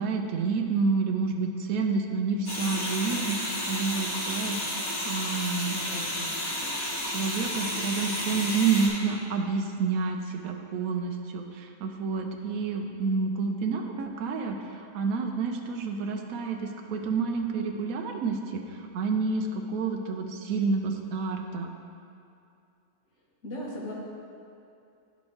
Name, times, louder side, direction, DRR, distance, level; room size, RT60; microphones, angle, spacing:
voice 1, 0.0-5.8 7.1-21.7, right 4 dB, 75° right, 3 dB, 1.0 m, -29 dB
sound 1, 2.5-8.9, left 1 dB, 75° left, 1.8 m, -32 dB
voice 2, 5.7-6.3 23.4-23.9, left 1 dB, 55° left, -6 dB, 1.6 m, -38 dB
10.5 x 4.2 x 3.1 m, 2.5 s
omnidirectional pair, 1.5 m